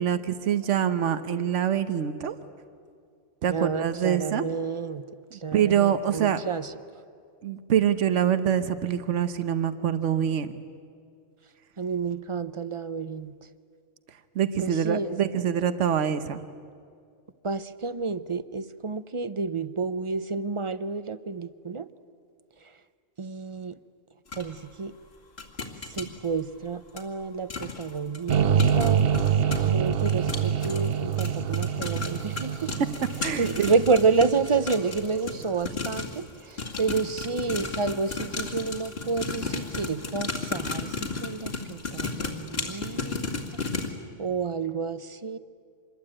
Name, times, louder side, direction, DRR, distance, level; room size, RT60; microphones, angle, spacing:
voice 1, 0.0-2.3 3.4-4.5 5.3-6.4 7.4-10.5 14.3-16.4 33.2-33.7, right 9 dB, 80° right, 11 dB, 1.3 m, -25 dB
voice 2, 3.5-5.0 5.4-6.7 11.8-13.3 14.6-15.2 17.4-21.9 23.2-23.8 24.4-24.9 25.9-29.0 29.6-32.7 33.4-43.6 44.2-45.4, right 4 dB, 35° right, 14 dB, 0.6 m, -29 dB
sound 1, 24.3-24.4 25.4-26.1 27.0-27.1 27.5-27.8 28.1-36.2 36.6-43.9, left 4 dB, 55° left, 2.7 m, -34 dB
sound 2, 28.3-35.4, right 7 dB, 60° right, 1.0 m, -26 dB
26.0 x 21.5 x 8.8 m, 2.3 s
omnidirectional pair, 1.2 m